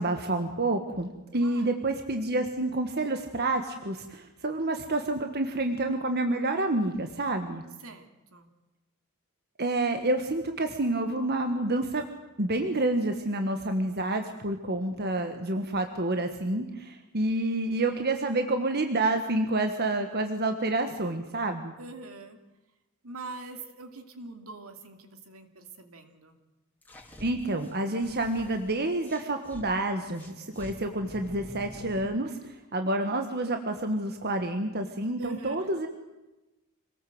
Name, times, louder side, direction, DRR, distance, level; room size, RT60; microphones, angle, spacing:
voice 1, 0.0-7.6 9.6-12.0 12.4-21.7 27.2-35.9, right 2 dB, 45° right, 6 dB, 1.5 m, -28 dB
voice 2, 7.8-8.5 21.8-22.4 23.0-26.4 35.2-35.7, right 3 dB, 70° right, 6 dB, 2.7 m, -44 dB
sound 1, 26.8-29.7 30.1-32.2, equal, 10° left, 2.9 m, -47 dB
26.0 x 19.5 x 7.9 m, 1.0 s
head